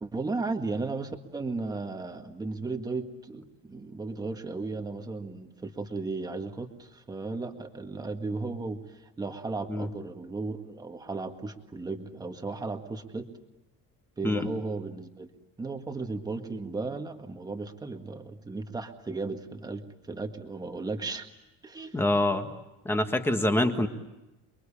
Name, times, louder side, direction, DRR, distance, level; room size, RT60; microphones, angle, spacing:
voice 1, 0.0-13.3 14.2-15.3 15.6-21.3 21.6-22.0, right 3 dB, 10° right, 5 dB, 1.8 m, -35 dB
voice 2, 21.9-22.5 22.8-23.9, left 1 dB, 5° left, 6 dB, 1.6 m, -25 dB
29.0 x 22.5 x 8.6 m, 0.97 s
cardioid pair, 170°, 33 cm